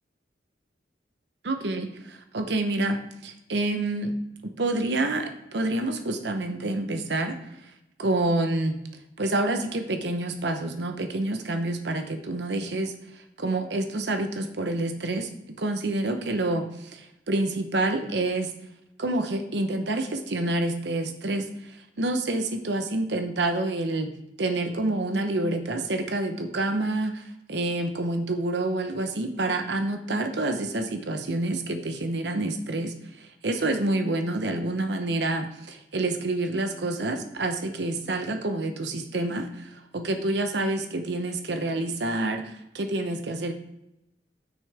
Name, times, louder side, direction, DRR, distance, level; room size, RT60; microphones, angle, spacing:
voice 1, 1.4-4.1 4.4-7.4 8.0-8.8 9.2-15.3 15.6-18.5 19.0-24.1 24.4-27.2 27.5-43.5, right 2 dB, 70° right, 7 dB, 0.9 m, -28 dB
9.3 x 6.4 x 3.4 m, 0.86 s
head